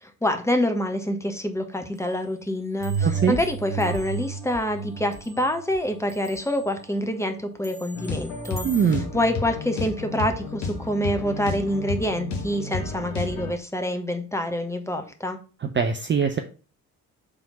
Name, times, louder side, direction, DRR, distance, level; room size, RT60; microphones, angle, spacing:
voice 1, 0.0-8.7 9.1-15.4, left 1 dB, 5° left, 5 dB, 1.1 m, -26 dB
sound 1, 1.9-2.2 2.5-5.8 6.1-6.8 7.6-9.0, right 1 dB, 60° right, 2.1 m, -47 dB
sound 2, 2.8-7.7 8.2-8.3, right 5 dB, 75° right, 1.1 m, -33 dB
voice 2, 3.0-3.4 8.6-9.0 15.6-16.4, right 6 dB, 25° right, 6 dB, 0.6 m, -22 dB
sound 3, 7.9-13.5, left 3 dB, 70° left, 1.3 m, -32 dB
4.9 x 3.6 x 5.5 m, 0.36 s
figure-of-eight pair, 45°, 45 cm